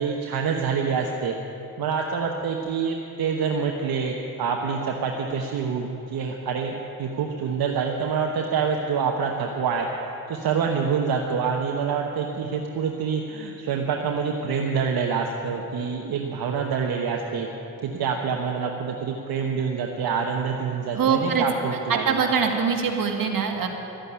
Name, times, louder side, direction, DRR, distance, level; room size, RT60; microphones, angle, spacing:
voice 1, 0.0-1.4 1.8-9.9 10.3-17.5 17.8-22.3, right 6 dB, 80° right, 1 dB, 1.1 m, -26 dB
voice 2, 20.9-21.4 21.9-23.7, right 6 dB, 65° right, 2 dB, 2.0 m, -23 dB
13.0 x 9.1 x 9.9 m, 3.0 s
cardioid pair, 70°, 36 cm